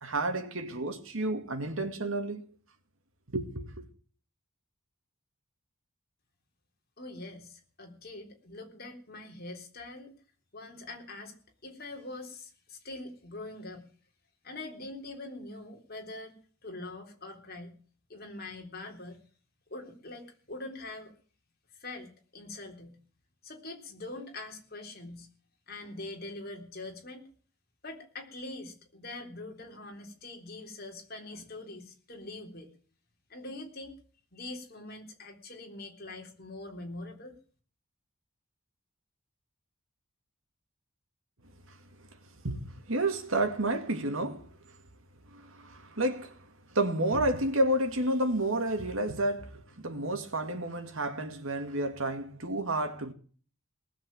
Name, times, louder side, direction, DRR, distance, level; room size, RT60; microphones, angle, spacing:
voice 1, 0.0-2.4 3.3-3.9 41.7-41.8 42.4-44.6 45.3-53.1, right 1 dB, 70° right, 2.3 m, -31 dB
voice 2, 7.0-10.1 10.5-11.3 11.6-13.9 14.4-16.3 16.6-17.7 18.1-19.2 19.7-21.1 21.8-22.1 22.3-23.0 23.4-25.3 25.7-27.3 27.8-32.7 33.3-34.0 34.3-37.4, left 2 dB, 45° left, 3.6 m, -43 dB
19.0 x 7.5 x 8.9 m
head